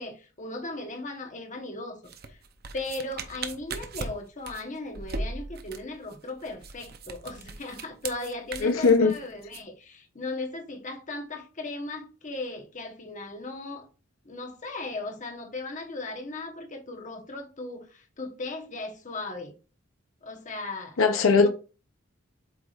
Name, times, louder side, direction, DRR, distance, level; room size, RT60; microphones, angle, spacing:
voice 1, 0.0-2.0 2.3-2.4 2.7-13.9 14.2-19.5 20.2-21.0 21.3-21.5, left 2 dB, 40° left, 1.1 m, -37 dB
sound 1, 2.1-9.6, right 3 dB, 50° right, 0.7 m, -38 dB
voice 2, 8.6-9.1 21.0-21.5, left 4 dB, 85° left, 0.7 m, -19 dB
8.0 x 4.7 x 2.5 m
head